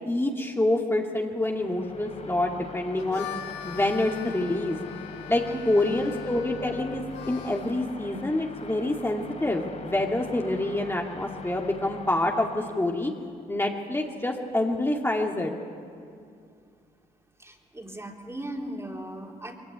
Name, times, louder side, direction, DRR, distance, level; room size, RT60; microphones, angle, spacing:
voice 1, 0.1-3.3 3.6-4.8 5.3-13.1 13.5-15.5, left 1 dB, 15° left, 0 dB, 2.3 m, -27 dB
sound 1, 1.4-13.0, left 4 dB, 40° left, 4.0 m, -43 dB
Harmonica, 2.8-7.8, left 11 dB, 80° left, 1.2 m, -41 dB
voice 2, 5.4-6.0 17.4-19.6, right 1 dB, 15° right, 1 dB, 3.7 m, -38 dB
22.0 x 16.5 x 9.9 m, 2.4 s
supercardioid pair, 55°, 17 cm